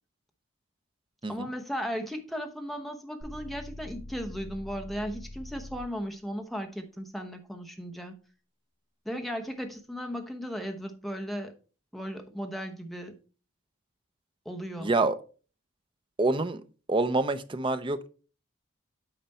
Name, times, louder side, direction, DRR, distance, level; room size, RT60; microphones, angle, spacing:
voice 1, 1.3-8.2 9.0-11.5 11.9-13.1 14.4-14.9, equal, ahead, 3 dB, 0.9 m, -36 dB
sound 1, 3.2-6.0, left 1 dB, 35° left, 4.0 m, -43 dB
voice 2, 14.8-15.2 16.2-16.6 16.9-18.1, right 2 dB, 25° right, 12 dB, 0.5 m, -26 dB
8.9 x 5.1 x 4.2 m, 0.37 s
head